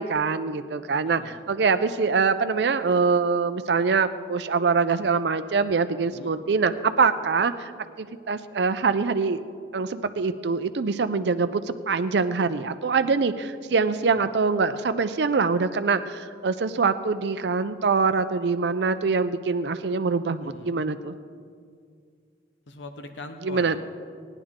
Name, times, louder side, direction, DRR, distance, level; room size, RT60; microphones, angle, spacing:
voice 1, 0.0-7.7 8.0-9.4 9.7-21.2 23.4-23.8, right 4 dB, 65° right, 10 dB, 0.5 m, -24 dB
voice 2, 1.1-1.4 6.0-6.3 14.1-14.3 20.4-20.8 22.7-23.8, left 2 dB, 85° left, 6 dB, 0.9 m, -41 dB
19.0 x 10.0 x 3.7 m, 2.2 s
head